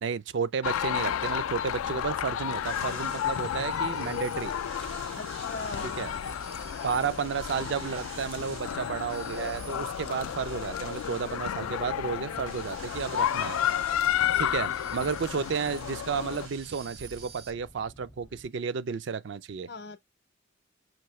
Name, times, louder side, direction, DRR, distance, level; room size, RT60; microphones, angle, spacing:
voice 1, 0.0-4.5 6.0-6.1 6.8-13.6 14.4-19.7, right 6 dB, 55° right, 0.4 m, -32 dB
sound 1, 0.6-16.5, left 9 dB, 85° left, 0.3 m, -32 dB
Boat Water vehicle, 1.1-18.5, left 1 dB, 10° left, 0.4 m, -53 dB
sound 2, 2.6-17.5, right 4 dB, 90° right, 1.7 m, -47 dB
voice 2, 5.1-6.0 19.7-20.0, left 3 dB, 50° left, 0.7 m, -39 dB
5.9 x 2.7 x 3.0 m
head